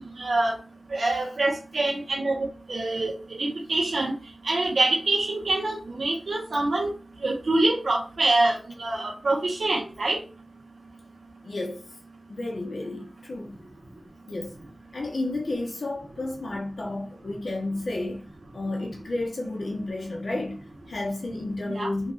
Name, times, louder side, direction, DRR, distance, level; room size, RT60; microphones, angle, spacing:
voice 1, 0.2-0.6 0.9-3.1 3.4-4.1 4.4-6.9 7.2-10.2 21.7-21.9, right 2 dB, 80° right, 1.2 m, -25 dB
voice 2, 1.0-1.4 11.4-11.9 12.3-13.6 14.3-14.6 14.9-22.1, left 2 dB, 70° left, 1.2 m, -32 dB
4.5 x 2.5 x 4.1 m
wide cardioid pair, 70°, 0 cm